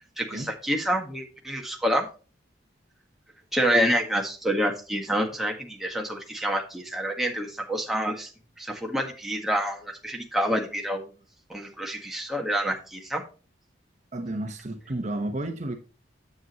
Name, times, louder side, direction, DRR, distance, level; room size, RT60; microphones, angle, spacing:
voice 1, 0.2-2.1 3.5-8.3 8.6-11.1 11.5-13.2, equal, ahead, 1.6 m, -27 dB
voice 2, 14.1-15.8, right 1 dB, 40° right, 1.1 m, -32 dB
9.9 x 7.9 x 3.1 m
head